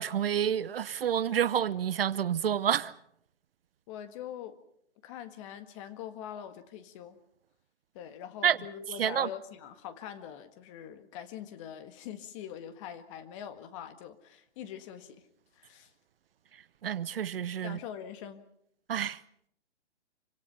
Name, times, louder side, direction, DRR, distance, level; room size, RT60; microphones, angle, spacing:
voice 1, 0.0-2.9 8.4-8.6 9.0-9.3 16.8-17.8 18.9-19.2, right 9 dB, 55° right, 0.9 m, -28 dB
voice 2, 3.9-4.6 5.0-7.2 7.9-15.2 15.6-15.9 17.6-18.4, left 9 dB, 25° left, 1.8 m, -43 dB
26.5 x 25.5 x 5.7 m
hypercardioid pair, 150°, 34 cm